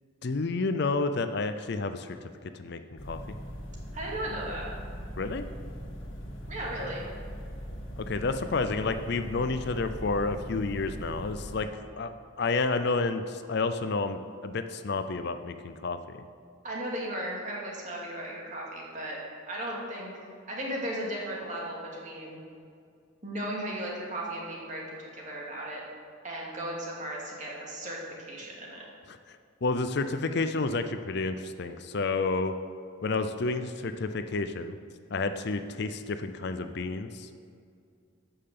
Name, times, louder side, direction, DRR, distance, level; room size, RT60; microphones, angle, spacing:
voice 1, 0.2-2.2 2.5-3.2 5.2-5.4 8.0-11.7 12.0-12.1 12.4-16.2 29.1-29.2 29.6-32.5 33.0-34.8 35.1-37.3, left 3 dB, 55° left, 9 dB, 0.5 m, -30 dB
sound 1, 3.0-11.6, equal, 75° left, 1.7 m, -40 dB
voice 2, 3.9-4.7 6.5-7.0 16.6-19.2 19.5-20.1 20.5-22.4 23.2-25.8 26.2-28.9, right 1 dB, 35° right, -3 dB, 2.4 m, -36 dB
13.5 x 5.7 x 6.7 m, 2.3 s
head